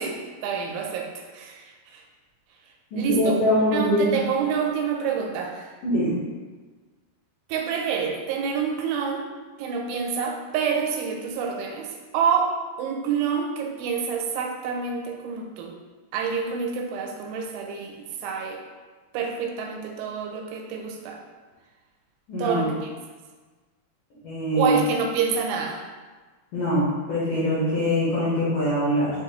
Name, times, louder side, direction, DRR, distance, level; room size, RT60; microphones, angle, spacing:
voice 1, 0.0-2.0 2.9-3.4 3.7-5.8 7.5-9.3 9.6-15.7 16.1-18.6 19.1-21.2 22.4-22.9 24.5-25.8, right 6 dB, 90° right, 1 dB, 3.0 m, -27 dB
voice 2, 2.9-4.2 5.8-6.1 22.3-22.7 24.2-24.8 26.5-29.1, equal, 75° left, -9 dB, 2.0 m, -23 dB
7.1 x 2.5 x 3.0 m, 1.4 s
omnidirectional pair, 5.3 m